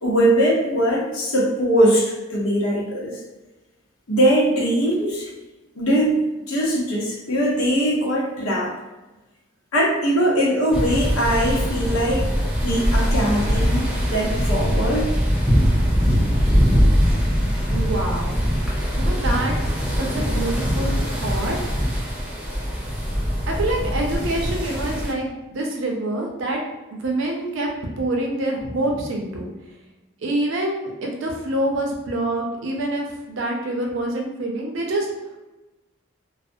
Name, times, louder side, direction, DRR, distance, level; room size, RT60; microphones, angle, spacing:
voice 1, 0.0-3.2 4.1-5.3 5.8-8.7 9.7-12.3 12.6-15.1 16.7-16.9, right 1 dB, 85° left, -3 dB, 0.8 m, -21 dB
sound 1, 10.7-25.1, equal, 5° right, 0.3 m, -22 dB
voice 2, 17.7-18.4 19.0-19.5 20.0-21.6 23.5-26.6 27.0-27.7 28.0-29.5 30.2-35.1, right 1 dB, 65° right, 0 dB, 0.5 m, -26 dB
2.3 x 2.0 x 2.6 m, 1.1 s
head